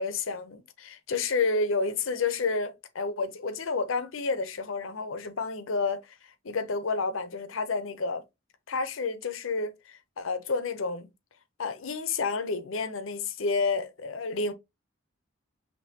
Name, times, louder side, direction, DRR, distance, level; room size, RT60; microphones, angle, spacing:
voice 1, 0.0-6.2 6.4-8.2 8.7-11.1 11.6-14.5, left 4 dB, 90° left, 0.7 m, -30 dB
5.4 x 3.0 x 2.8 m
head